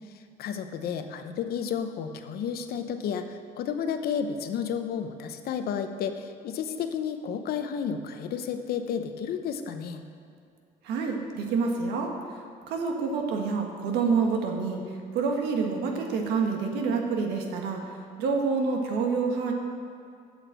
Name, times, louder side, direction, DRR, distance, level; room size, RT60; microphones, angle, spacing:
voice 1, 0.4-10.0, left 7 dB, 65° left, 8 dB, 0.8 m, -32 dB
voice 2, 10.8-12.4 12.7-14.8 15.1-17.9 18.2-19.5, right 4 dB, 85° right, 2 dB, 1.5 m, -27 dB
8.2 x 6.6 x 7.6 m, 2.5 s
cardioid pair, 110°, 17 cm